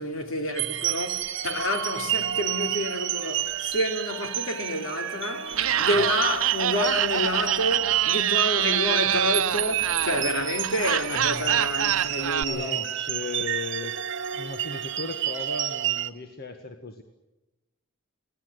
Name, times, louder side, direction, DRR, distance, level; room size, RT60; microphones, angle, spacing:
voice 1, 0.0-12.8, left 1 dB, 75° left, 3.4 m, -29 dB
sound 1, 0.6-16.1, right 12 dB, 60° right, 1.0 m, -30 dB
Laughter, 5.5-12.4, right 10 dB, 90° right, 0.7 m, -26 dB
voice 2, 12.4-13.9 14.3-17.0, left 3 dB, 50° left, 1.7 m, -36 dB
24.5 x 18.0 x 8.2 m
head